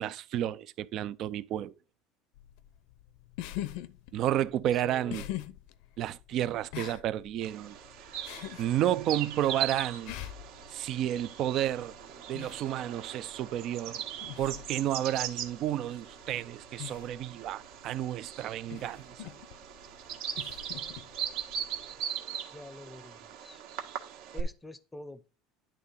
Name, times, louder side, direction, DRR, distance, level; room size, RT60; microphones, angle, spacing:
voice 1, 0.0-1.7 4.1-5.2 6.0-7.8 8.6-10.1 10.7-11.9 12.3-14.0 14.4-19.3, right 12 dB, 45° right, 0.5 m, -31 dB
sound 1, 2.4-22.0, left 14 dB, 70° left, 0.7 m, -45 dB
voice 2, 4.6-5.3 22.5-23.6 24.3-25.3, left 2 dB, 10° left, 0.7 m, -47 dB
Bird vocalization bird call bird song, 7.4-24.4, right 9 dB, 65° right, 1.6 m, -40 dB
10.5 x 3.7 x 5.5 m
cardioid pair, 150°, 0 cm